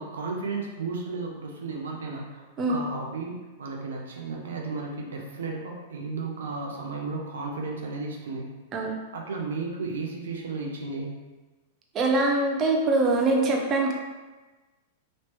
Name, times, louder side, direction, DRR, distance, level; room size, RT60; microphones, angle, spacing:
voice 1, 0.0-8.5 9.1-11.2, right 3 dB, 85° right, 0 dB, 0.6 m, -34 dB
voice 2, 11.9-13.9, right 2 dB, 30° right, 0 dB, 0.6 m, -23 dB
3.1 x 2.9 x 3.0 m, 1.2 s
hypercardioid pair, 115°, 0 cm